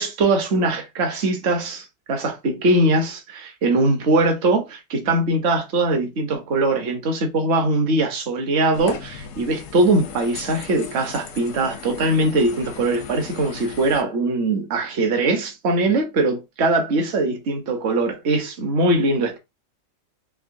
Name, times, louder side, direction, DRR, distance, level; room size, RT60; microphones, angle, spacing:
voice 1, 0.0-19.4, right 2 dB, 50° right, 0.8 m, -21 dB
sound 1, 8.7-14.0, left 7 dB, 70° left, 0.8 m, -38 dB
3.8 x 2.7 x 2.5 m
omnidirectional pair, 2.0 m